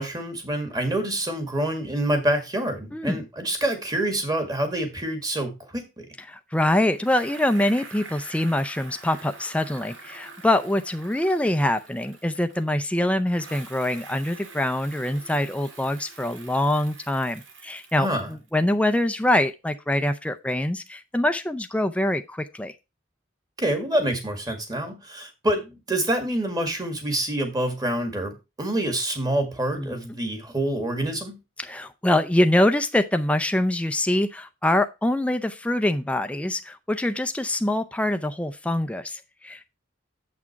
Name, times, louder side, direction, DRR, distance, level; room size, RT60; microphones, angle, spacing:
voice 1, 0.0-6.1 17.9-18.3 23.6-31.4, right 1 dB, 20° right, 6 dB, 1.8 m, -27 dB
voice 2, 2.9-3.2 6.3-22.7 29.8-29.9 31.6-39.6, left 1 dB, 5° left, 8 dB, 0.4 m, -24 dB
Bicycle, 7.0-12.8 13.3-18.5, right 4 dB, 70° right, 1.7 m, -45 dB
7.5 x 6.1 x 4.6 m, 0.25 s
head